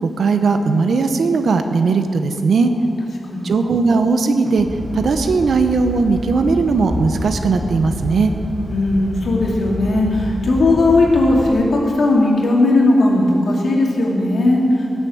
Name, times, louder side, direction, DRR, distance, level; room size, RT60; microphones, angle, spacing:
voice 1, 0.0-2.7 3.4-4.7 4.9-8.3, right 4 dB, 75° right, 7 dB, 0.9 m, -17 dB
voice 2, 3.3-3.6 8.7-14.6, left 2 dB, 70° left, -2 dB, 2.5 m, -17 dB
sound 1, 4.6-11.5, left 1 dB, 20° right, 1.9 m, -28 dB
17.5 x 7.2 x 7.1 m, 2.8 s
wide cardioid pair, 160°, 0 cm